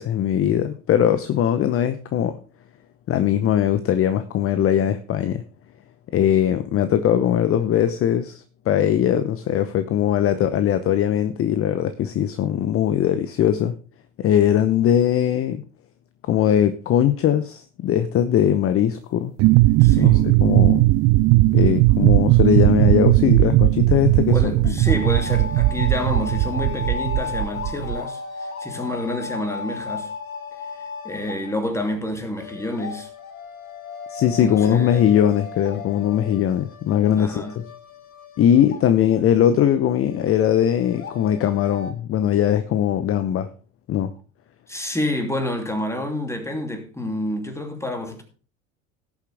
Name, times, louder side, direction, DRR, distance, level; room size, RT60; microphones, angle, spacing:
voice 1, 0.0-2.4 3.1-5.4 6.1-13.7 14.2-15.6 16.2-19.3 19.9-20.8 21.5-24.7 34.1-37.4 38.4-43.5 43.9-44.1, left 10 dB, 35° left, 0.8 m, -20 dB
sound 1, 19.4-28.0, right 19 dB, 40° right, 0.4 m, -17 dB
voice 2, 19.8-20.3 24.3-30.1 30.6-30.7 31.0-33.1 34.2-35.1 37.2-37.6 44.7-48.2, left 1 dB, 5° left, 2.7 m, -28 dB
sound 2, 24.9-39.2 39.5-39.6 39.9-41.9, left 5 dB, 90° left, 1.3 m, -35 dB
17.0 x 7.2 x 3.4 m
hypercardioid pair, 75°, 41 cm